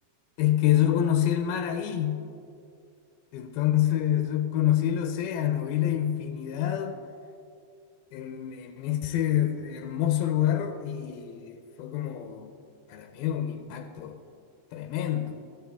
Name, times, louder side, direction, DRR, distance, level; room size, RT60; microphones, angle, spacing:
voice 1, 0.4-2.3 3.3-7.0 8.1-12.5 12.9-14.2 14.7-15.4, left 11 dB, 90° left, 7 dB, 2.1 m, -27 dB
16.0 x 13.5 x 3.5 m, 2.5 s
omnidirectional pair, 4.9 m